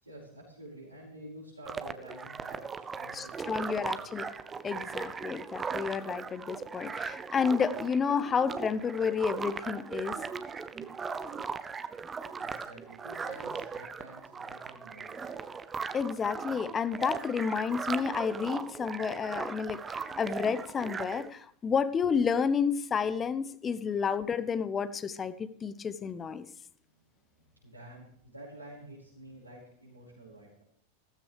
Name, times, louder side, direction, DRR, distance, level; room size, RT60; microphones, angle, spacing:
voice 1, 0.0-4.1 12.3-15.3 27.6-30.6, right 1 dB, 85° right, -8 dB, 5.2 m, -50 dB
sound 1, 1.6-21.3, right 5 dB, 20° right, 0.9 m, -38 dB
voice 2, 3.1-4.3 4.6-10.2 15.9-26.5, left 6 dB, 20° left, 15 dB, 0.9 m, -30 dB
16.0 x 14.5 x 3.4 m, 0.64 s
figure-of-eight pair, 90°, 0 cm